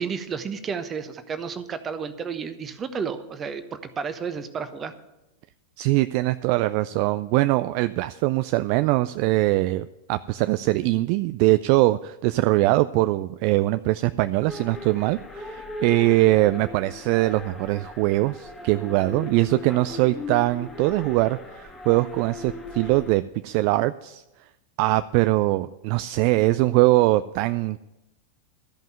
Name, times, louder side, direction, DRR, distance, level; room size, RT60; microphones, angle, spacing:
voice 1, 0.0-4.9, right 6 dB, 25° right, 10 dB, 1.0 m, -32 dB
voice 2, 5.8-24.2 24.8-27.8, right 18 dB, 45° right, 11 dB, 0.3 m, -22 dB
sound 1, 14.5-23.1, left 3 dB, 15° left, 1.6 m, -38 dB
13.5 x 5.5 x 9.1 m, 0.95 s
figure-of-eight pair, 90°, 0 cm